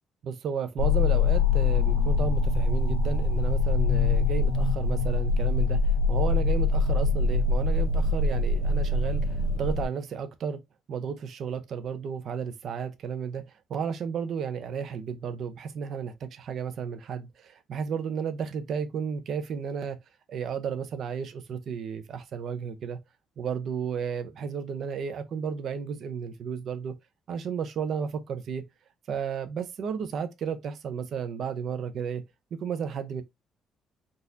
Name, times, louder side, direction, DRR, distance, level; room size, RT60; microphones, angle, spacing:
voice 1, 0.2-10.6 10.9-20.0 20.3-23.0 23.4-26.9 27.3-28.6 29.1-32.2 32.5-33.2, right 7 dB, 55° right, 0.5 m, -33 dB
sound 1, 0.8-9.9, left 4 dB, 80° left, 1.2 m, -24 dB
3.9 x 2.5 x 2.6 m
cardioid pair, 145°, 0 cm